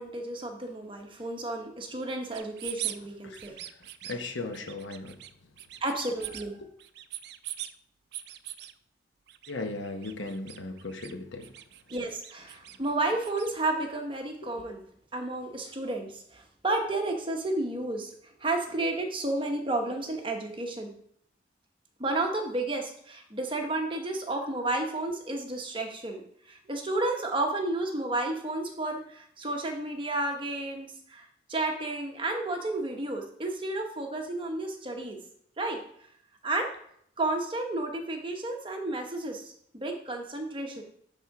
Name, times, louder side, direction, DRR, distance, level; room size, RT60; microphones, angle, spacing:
voice 1, 0.0-3.6 5.8-6.6 11.9-14.8 15.1-18.1 18.4-20.9 22.0-35.2 35.6-35.8 36.4-36.7 37.2-40.8, right 2 dB, 25° right, 3 dB, 1.1 m, -32 dB
sound 1, 2.3-3.0 3.3-4.2 4.5-5.3 5.6-6.5 6.8-7.7 8.1-8.7 9.3-9.5 9.8-11.1 11.4-13.5, right 13 dB, 60° right, 0.4 m, -41 dB
voice 2, 3.8-5.2 9.5-11.5 14.4-14.7, left 2 dB, 75° left, 6 dB, 1.0 m, -37 dB
10.5 x 3.7 x 4.7 m, 0.65 s
head